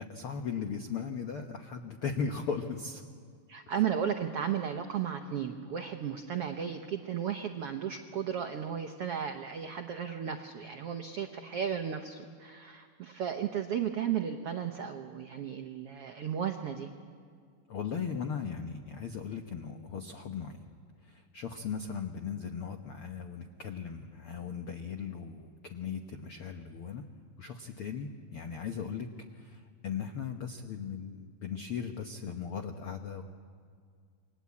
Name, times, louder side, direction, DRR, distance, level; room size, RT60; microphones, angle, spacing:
voice 1, 0.0-3.0 17.7-20.7 21.0-27.0 27.4-29.1 29.3-33.2, left 6 dB, 80° left, 5 dB, 1.2 m, -38 dB
voice 2, 3.5-16.9, right 8 dB, 85° right, 6 dB, 1.3 m, -34 dB
28.5 x 23.0 x 8.5 m, 2.1 s
omnidirectional pair, 4.2 m